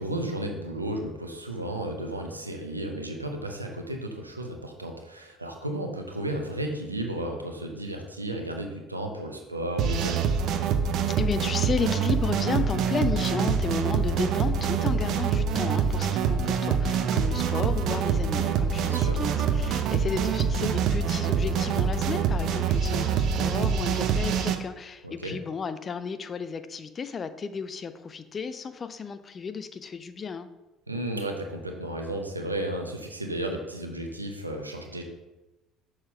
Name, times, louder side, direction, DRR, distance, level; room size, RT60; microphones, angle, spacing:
voice 1, 0.0-10.3 18.8-19.2 25.0-25.4 30.9-35.0, right 1 dB, 90° right, 3 dB, 0.7 m, -33 dB
sound 1, 9.8-24.6, right 7 dB, 55° right, 0.5 m, -25 dB
voice 2, 11.2-30.5, left 5 dB, 35° left, 11 dB, 0.5 m, -33 dB
6.4 x 5.9 x 3.5 m, 1.0 s
figure-of-eight pair, 55°, 0 cm